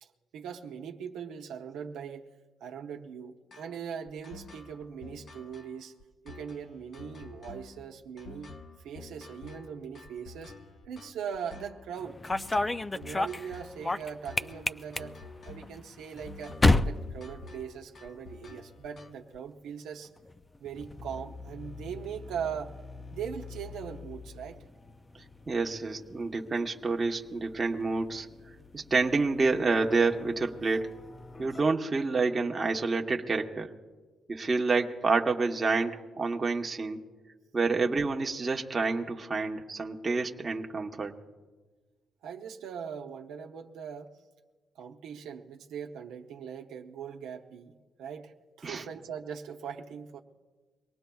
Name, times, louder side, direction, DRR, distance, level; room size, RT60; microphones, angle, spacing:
voice 1, 0.0-2.3 2.6-5.9 6.2-8.5 8.8-10.6 10.8-12.2 12.5-12.6 12.9-15.2 15.4-16.6 16.8-20.1 20.6-22.7 23.1-24.6 42.2-44.1 44.7-50.2, right 7 dB, 85° right, 1 dB, 0.9 m, -40 dB
sound 1, 3.5-19.4, left 3 dB, 55° left, 1.0 m, -49 dB
sound 2, 12.0-18.2 18.4-19.0 20.0-31.7, left 2 dB, 20° left, 0.4 m, -34 dB
voice 2, 25.5-28.3 28.7-30.9 31.4-33.7 34.3-37.0 37.5-41.1 48.6-48.8, right 3 dB, 30° right, 2 dB, 1.0 m, -28 dB
24.0 x 18.5 x 2.3 m, 1.3 s
cardioid pair, 90°, 0 cm